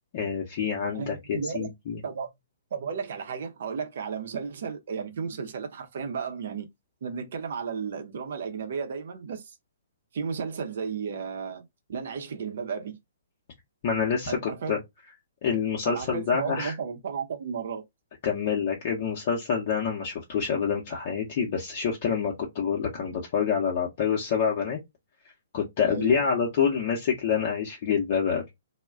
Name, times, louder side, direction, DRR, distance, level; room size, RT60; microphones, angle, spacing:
voice 1, 0.1-2.0 13.8-14.8 15.4-16.8 18.2-24.8 25.5-28.5, left 7 dB, 45° left, 0.7 m, -27 dB
voice 2, 0.9-1.7 2.0-2.3 2.7-6.7 7.0-9.6 10.1-11.6 11.9-13.0 14.3-14.7 15.8-17.8 25.9-26.3, right 6 dB, 55° right, 0.6 m, -33 dB
2.3 x 2.1 x 3.3 m
figure-of-eight pair, 120°, 0 cm